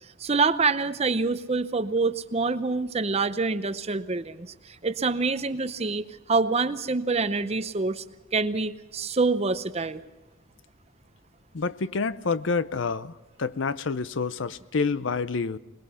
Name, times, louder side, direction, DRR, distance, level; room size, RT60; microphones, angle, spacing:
voice 1, 0.2-4.5 4.8-8.0 8.3-10.0, right 4 dB, 30° right, 0.7 m, -26 dB
voice 2, 11.5-13.1 13.4-15.6, left 4 dB, 60° left, 0.6 m, -28 dB
22.0 x 21.0 x 5.6 m
head